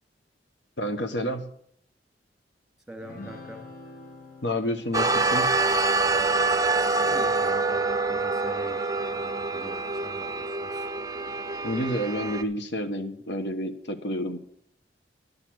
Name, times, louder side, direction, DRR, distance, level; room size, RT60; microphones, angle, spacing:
voice 1, 0.8-1.5 4.4-5.6 11.6-14.4, equal, 75° left, 7 dB, 1.2 m, -29 dB
voice 2, 2.9-3.6 7.0-10.9, right 1 dB, 5° right, 2 dB, 2.4 m, -44 dB
sound 1, 3.0-8.7, left 2 dB, 55° left, 1.9 m, -49 dB
sound 2, 4.9-12.4, right 3 dB, 20° right, 0.5 m, -26 dB
11.5 x 6.6 x 7.8 m, 0.67 s
head